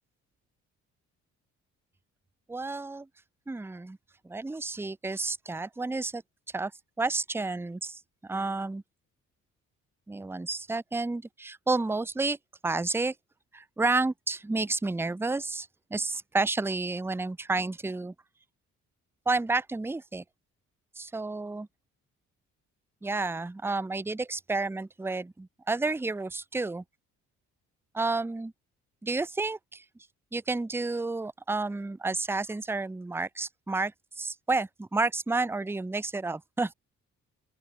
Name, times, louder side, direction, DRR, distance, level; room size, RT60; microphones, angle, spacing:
voice 1, 2.5-3.1 3.5-4.0 4.2-6.2 6.5-6.7 7.0-8.8 10.1-12.4 12.6-13.1 13.5-18.1 19.3-20.2 21.0-21.7 23.0-26.8 27.9-28.5 29.0-29.8 30.3-36.7, right 3 dB, 10° right, 0.7 m, -31 dB
open air
cardioid pair, 90°, 30 cm